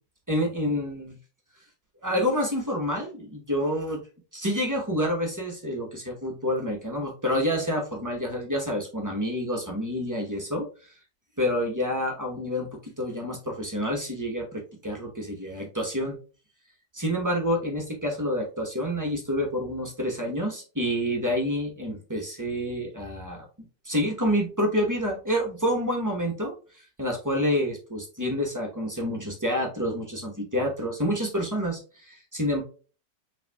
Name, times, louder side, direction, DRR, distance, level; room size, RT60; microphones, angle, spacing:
voice 1, 0.3-1.1 2.0-4.0 4.3-10.7 11.4-12.7 13.0-16.1 16.9-23.5 23.8-26.5 27.0-32.6, equal, 15° right, 0 dB, 0.6 m, -28 dB
5.7 x 3.4 x 2.2 m, 0.36 s
omnidirectional pair, 2.0 m